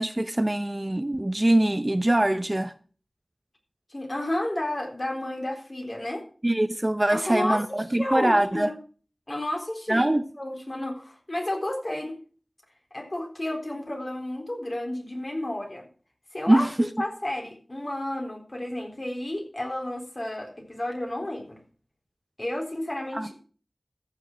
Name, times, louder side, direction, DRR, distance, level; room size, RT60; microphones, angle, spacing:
voice 1, 0.0-2.7 6.4-8.7 9.9-10.2 16.5-16.7 23.1-23.3, right 1 dB, 25° right, 0.6 m, -23 dB
voice 2, 3.9-6.2 7.1-8.7 9.3-12.2 12.9-15.9 16.3-21.6 22.4-23.3, left 1 dB, 35° left, 3.8 m, -32 dB
14.5 x 6.6 x 6.1 m
wide cardioid pair, 65°, 0 cm